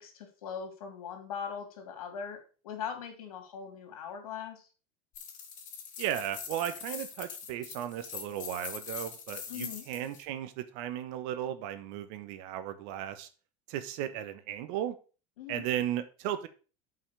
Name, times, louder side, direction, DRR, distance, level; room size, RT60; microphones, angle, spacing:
voice 1, 0.0-4.7 9.5-9.9 15.4-15.7, left 7 dB, 85° left, 5 dB, 2.6 m, -40 dB
sound 1, 5.2-10.2, left 7 dB, 45° left, 2.6 m, -43 dB
voice 2, 6.0-13.3 13.7-15.0 15.5-16.5, right 11 dB, 65° right, 11 dB, 1.2 m, -35 dB
5.8 x 5.5 x 6.6 m, 0.36 s
supercardioid pair, 115°, 18 cm